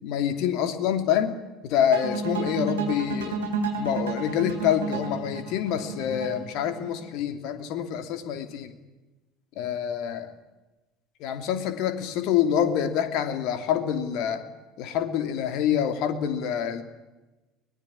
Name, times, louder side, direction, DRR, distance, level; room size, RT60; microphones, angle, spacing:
voice 1, 0.0-1.3 1.6-3.4 3.8-8.7 9.6-10.3 11.2-14.4 14.8-16.8, left 9 dB, 60° left, 9 dB, 2.9 m, -26 dB
sound 1, 1.9-7.0, right 4 dB, 75° right, 3.9 m, -31 dB
24.0 x 20.5 x 10.0 m, 1.1 s
figure-of-eight pair, 60°, 0 cm